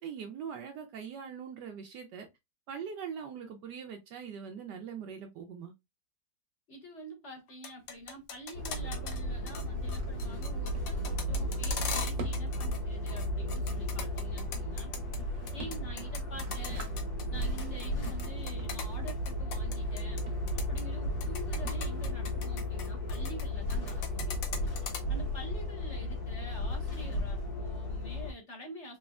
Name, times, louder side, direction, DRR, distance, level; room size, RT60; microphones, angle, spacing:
voice 1, 0.0-2.3 2.7-5.7, right 7 dB, 75° right, 1.2 m, -42 dB
voice 2, 6.7-14.9 15.5-16.9 17.3-24.4 25.1-29.0, equal, 40° left, 1.4 m, -47 dB
sound 1, 7.5-9.2 9.5-9.6 9.9-12.8 13.1-15.2 15.5-20.2 20.5-20.8 21.2-23.4 23.7-25.0, left 6 dB, 60° left, 1.0 m, -39 dB
Drawer open or close, 7.8-23.0, right 1 dB, 55° right, 1.1 m, -50 dB
sound 2, 8.5-28.3, equal, 85° left, 2.1 m, -34 dB
4.3 x 2.9 x 2.3 m
omnidirectional pair, 2.0 m